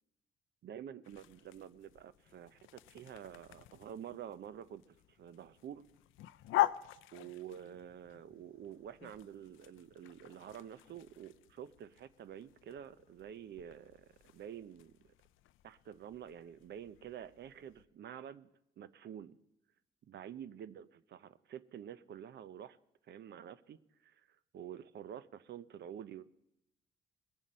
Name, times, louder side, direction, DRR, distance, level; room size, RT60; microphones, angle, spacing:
voice 1, 0.6-5.8 7.1-15.1 15.6-18.5 18.8-19.4 20.0-22.8 23.0-24.3 24.5-26.3, right 9 dB, 60° right, 16 dB, 0.6 m, -49 dB
sound 1, 1.0-17.9, left 15 dB, 85° left, 0.5 m, -43 dB
20.5 x 7.2 x 5.4 m, 0.83 s
cardioid pair, 90°, 20 cm